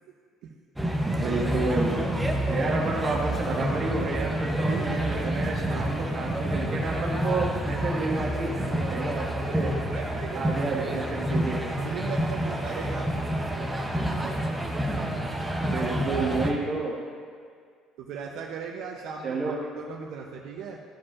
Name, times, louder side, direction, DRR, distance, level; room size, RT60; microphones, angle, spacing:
sound 1, 0.8-16.5, right 1 dB, 5° right, 0.6 m, -28 dB
voice 1, 1.1-2.0 2.5-9.7 10.3-11.6 15.5-17.0 19.2-19.6, right 3 dB, 35° right, -3 dB, 1.4 m, -30 dB
voice 2, 2.4-2.7 4.6-5.9 9.5-11.1 11.7-14.4 18.0-20.8, right 6 dB, 65° right, 0 dB, 0.6 m, -39 dB
13.0 x 4.9 x 2.4 m, 2.1 s
cardioid pair, 165°, 0 cm